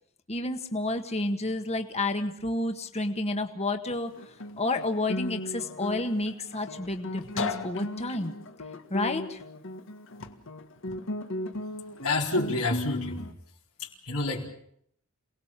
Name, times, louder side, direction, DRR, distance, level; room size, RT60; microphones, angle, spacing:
voice 1, 0.3-4.1 4.6-8.3 8.9-9.4, left 2 dB, 30° left, 6 dB, 1.7 m, -30 dB
Guitar, 3.9-13.3, left 2 dB, 60° left, 1.8 m, -36 dB
voice 2, 12.0-13.3 13.8-14.5, left 2 dB, 80° left, -2 dB, 4.5 m, -28 dB
28.0 x 19.0 x 7.5 m, 0.68 s
head